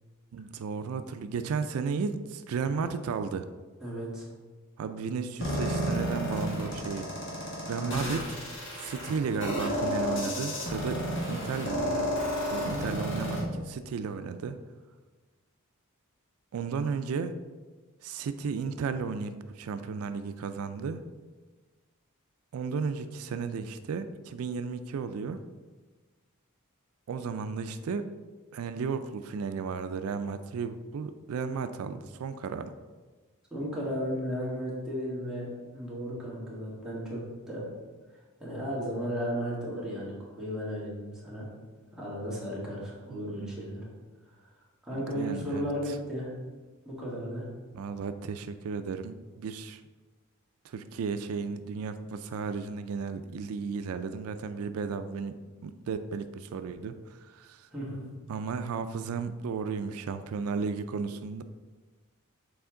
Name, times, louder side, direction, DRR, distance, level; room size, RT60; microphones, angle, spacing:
voice 1, 0.3-3.5 4.8-7.1 7.7-8.2 8.8-12.1 12.5-14.6 16.5-17.3 18.0-21.0 22.5-25.4 27.1-28.1 28.5-32.7 43.1-43.5 44.9-46.0 47.7-49.8 50.6-57.7 58.3-61.4, right 5 dB, 85° right, 10 dB, 0.3 m, -34 dB
voice 2, 3.8-4.3 7.8-8.1 33.5-37.2 37.5-37.6 38.4-41.5 41.9-43.8 44.8-46.3 46.8-47.5 57.7-58.0, equal, 5° right, -7 dB, 1.7 m, -34 dB
sound 1, 5.4-13.4, equal, 60° left, 1.7 m, -31 dB
6.9 x 4.3 x 3.7 m, 1.3 s
head